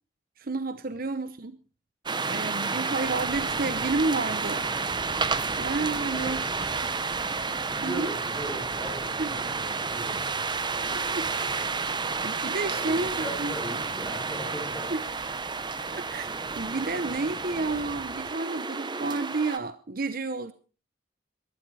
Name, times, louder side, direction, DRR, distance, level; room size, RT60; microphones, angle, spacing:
voice 1, 0.4-1.6 2.3-4.7 5.6-6.4 6.8-6.9 7.8-8.1 9.2-9.4 10.9-11.7 12.2-13.5 14.9-15.0 15.9-20.5, right 3 dB, 55° right, 12 dB, 0.9 m, -31 dB
sound 1, 2.1-19.6, right 4 dB, 25° right, 0.9 m, -31 dB
voice 2, 2.2-3.2 6.0-6.7 7.6-10.2 11.3-11.7 12.6-14.9, equal, 5° left, -2 dB, 7.9 m, -39 dB
19.5 x 13.0 x 4.8 m, 0.36 s
head